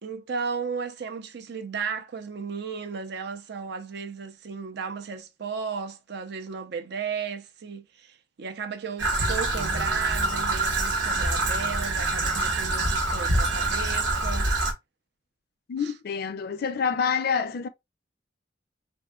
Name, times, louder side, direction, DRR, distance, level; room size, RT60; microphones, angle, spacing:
voice 1, 0.0-14.5 15.8-15.9, right 5 dB, 60° right, 0.5 m, -35 dB
Traffic noise roadway noise / Trickle dribble, 9.0-14.7, right 2 dB, 85° right, 1.1 m, -25 dB
voice 2, 15.7-17.7, left 6 dB, 55° left, 0.4 m, -27 dB
3.6 x 2.6 x 2.2 m
head